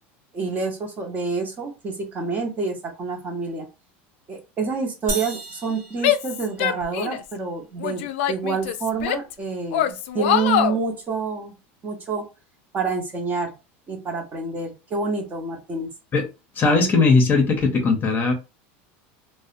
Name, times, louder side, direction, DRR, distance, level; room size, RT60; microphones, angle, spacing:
voice 1, 0.3-3.7 4.3-11.5 11.8-12.2 12.7-13.5 13.9-15.9, right 4 dB, 25° right, 0.8 m, -28 dB
sound 1, 5.1-7.0, right 3 dB, 50° right, 0.9 m, -34 dB
Female speech woman speaking / Yell, 6.0-7.3 7.8-9.3 9.7-10.8, left 10 dB, 80° left, 0.4 m, -23 dB
voice 2, 16.5-18.3, left 3 dB, 30° left, 0.7 m, -18 dB
2.6 x 2.0 x 2.5 m
supercardioid pair, 135°, 6 cm